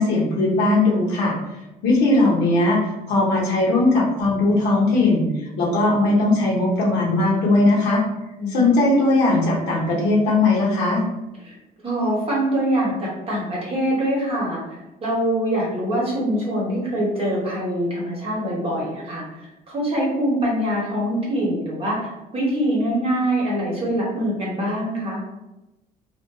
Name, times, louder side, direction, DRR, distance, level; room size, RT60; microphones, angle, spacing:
voice 1, 0.0-1.3 1.8-2.8 3.1-5.3 5.6-8.0 8.5-11.0, left 2 dB, 90° left, -4 dB, 0.7 m, -18 dB
voice 2, 8.4-8.8 11.4-11.5 11.8-14.6 15.0-19.4 19.7-25.2, right 1 dB, 35° right, -4 dB, 0.8 m, -24 dB
2.5 x 2.2 x 2.2 m, 0.98 s
cardioid pair, 110°, 17 cm